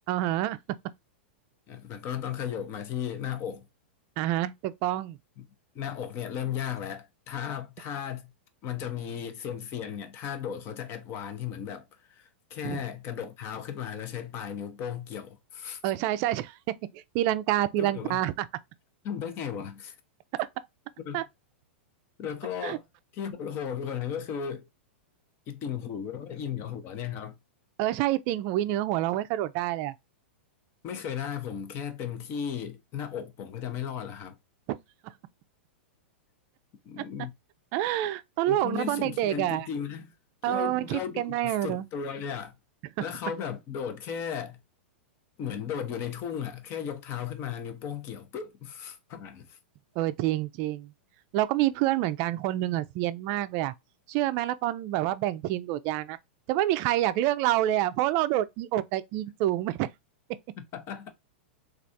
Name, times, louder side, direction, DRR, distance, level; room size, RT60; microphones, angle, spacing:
voice 1, 0.1-0.6 4.2-5.2 12.6-12.8 15.8-16.6 16.9-18.5 21.1-21.2 22.6-22.8 27.8-29.9 37.7-39.7 40.4-41.9 50.0-50.9 51.3-53.7 54.1-56.2 56.5-59.9, right 14 dB, 45° right, 0.4 m, -27 dB
voice 2, 1.7-3.7 5.4-5.5 5.7-8.3 8.6-15.8 17.8-18.2 19.0-19.9 21.0-21.2 22.2-22.8 23.1-24.7 25.5-27.3 30.8-34.4 36.8-37.3 38.5-40.1 40.5-42.5 43.0-44.6 45.4-49.6 60.6-61.1, left 8 dB, 40° left, 0.7 m, -35 dB
3.2 x 2.4 x 2.6 m
hypercardioid pair, 120°, 6 cm